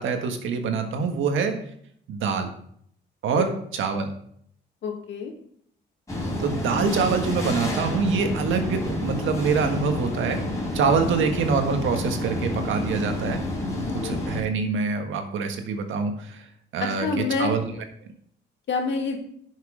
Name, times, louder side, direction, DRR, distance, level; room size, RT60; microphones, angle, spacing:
voice 1, 0.0-1.5 2.1-2.5 3.2-4.1 6.4-10.4 10.7-13.4 14.0-16.4 16.7-17.6, right 5 dB, 75° right, 5 dB, 1.6 m, -25 dB
voice 2, 4.8-5.3 14.0-14.2 16.8-17.5 18.7-19.2, left 5 dB, 65° left, 2 dB, 2.4 m, -27 dB
sound 1, 6.1-14.4, left 1 dB, 15° left, 4.2 m, -29 dB
10.5 x 6.5 x 4.9 m, 0.66 s
cardioid pair, 90°, 20 cm